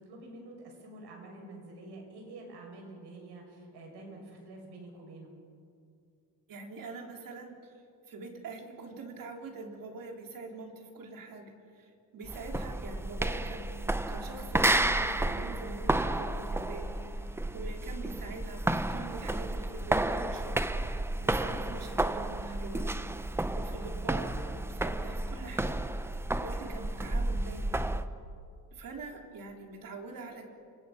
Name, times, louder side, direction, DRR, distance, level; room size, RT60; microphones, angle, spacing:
voice 1, 0.0-5.3 23.8-24.4, right 2 dB, 75° right, 1 dB, 7.0 m, -48 dB
voice 2, 6.5-7.7 8.1-16.8 17.1-17.3 17.5-18.6 18.9-20.6 21.2-22.9 23.5-24.3 24.8-25.8 26.4-27.8 28.7-30.5, right 3 dB, 55° right, 2 dB, 3.5 m, -44 dB
sound 1, 12.3-28.1, right 1 dB, 5° right, 0.6 m, -31 dB
29.5 x 25.5 x 5.8 m, 2.4 s
cardioid pair, 170°, 40 cm